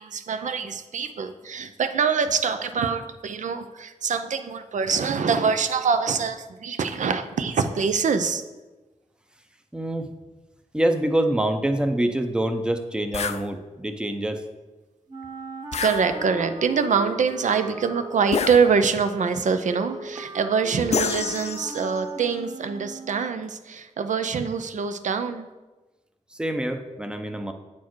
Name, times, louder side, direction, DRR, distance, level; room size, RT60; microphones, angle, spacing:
voice 1, 0.0-8.4 15.8-25.5, right 5 dB, 70° right, 10 dB, 0.6 m, -24 dB
voice 2, 9.7-10.1 10.7-14.4 26.3-27.5, right 1 dB, 5° right, 7 dB, 0.6 m, -25 dB
sound 1, 13.1-13.5 15.7-16.5 18.3-19.1 20.9-22.0, left 6 dB, 55° left, 0.4 m, -29 dB
Wind instrument woodwind instrument, 15.1-23.4, right 3 dB, 35° right, 1.0 m, -39 dB
8.3 x 4.3 x 4.6 m, 1.2 s
wide cardioid pair, 100°, 13 cm